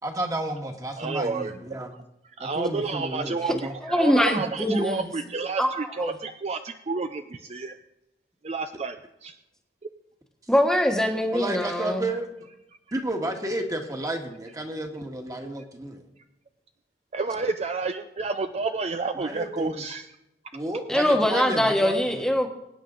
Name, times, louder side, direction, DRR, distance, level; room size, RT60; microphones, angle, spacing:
voice 1, 0.0-1.9 2.4-3.7 11.3-12.3 12.9-16.0 19.1-19.8 20.5-22.2, right 1 dB, 20° right, 3 dB, 1.6 m, -32 dB
voice 2, 1.0-1.5 2.4-7.8 8.4-9.0 9.2-9.4 17.1-20.1, right 4 dB, 40° right, 8 dB, 0.5 m, -30 dB
voice 3, 3.8-5.1 5.6-6.1 10.5-12.1 20.9-22.5, equal, 5° left, 3 dB, 1.3 m, -23 dB
22.0 x 9.2 x 3.9 m, 0.85 s
head